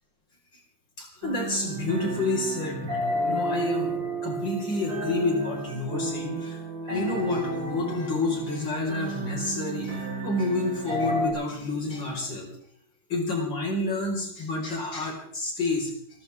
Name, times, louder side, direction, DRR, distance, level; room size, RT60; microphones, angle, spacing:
voice 1, 1.0-12.5 13.1-15.9, left 2 dB, 25° left, -1 dB, 5.4 m, -29 dB
sound 1, 1.2-11.3, right 1 dB, 30° right, 6.8 m, -32 dB
29.5 x 13.0 x 3.6 m, 0.64 s
omnidirectional pair, 4.6 m